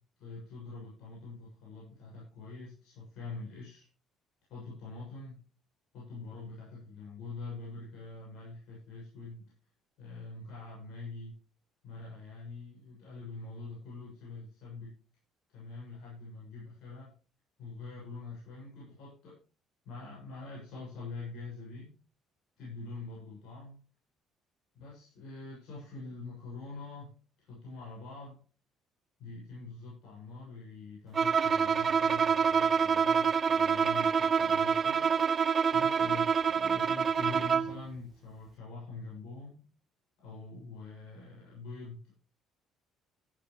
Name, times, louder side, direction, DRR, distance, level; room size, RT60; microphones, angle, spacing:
voice 1, 0.2-3.9 4.5-5.4 5.9-9.4 10.0-11.3 11.8-14.9 15.5-17.1 17.6-19.4 19.9-21.9 22.6-23.8 24.7-27.1 27.4-28.4 29.2-35.1 35.7-39.6 40.2-42.2, left 3 dB, 75° left, -5 dB, 6.9 m, -44 dB
Bowed string instrument, 31.1-37.8, right 6 dB, 40° right, 0.4 m, -27 dB
13.5 x 10.5 x 3.3 m, 0.37 s
cardioid pair, 100°, 0 cm